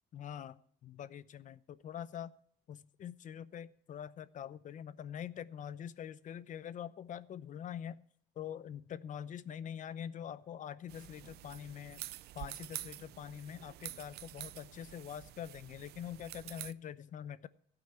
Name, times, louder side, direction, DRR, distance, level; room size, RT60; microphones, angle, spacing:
voice 1, 0.1-2.3 2.7-8.0 8.4-12.0 12.3-17.5, left 9 dB, 50° left, 16 dB, 0.7 m, -44 dB
sound 1, 10.9-16.7, right 15 dB, 75° right, 0.5 m, -48 dB
15.5 x 5.9 x 8.8 m, 0.63 s
cardioid pair, 110°, 17 cm